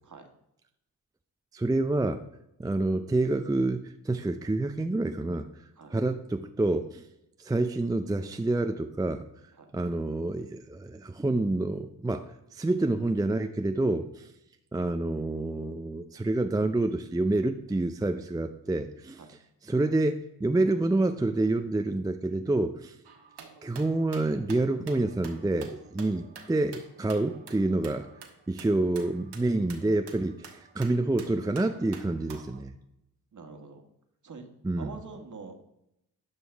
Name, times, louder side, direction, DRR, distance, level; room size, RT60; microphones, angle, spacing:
voice 1, 1.5-2.2 2.6-5.5 5.9-7.0 7.4-9.2 9.7-14.3 14.7-19.2 19.7-22.9 23.6-28.1 28.5-32.7 34.6-34.9, right 2 dB, 10° right, 7 dB, 0.5 m, -28 dB
sound 1, 23.0-32.6, right 5 dB, 70° right, 1.4 m, -49 dB
voice 2, 33.3-33.9 34.2-34.5 34.8-35.6, right 4 dB, 45° right, 4 dB, 1.6 m, -45 dB
10.5 x 5.4 x 3.5 m, 0.82 s
hypercardioid pair, 40°, 42 cm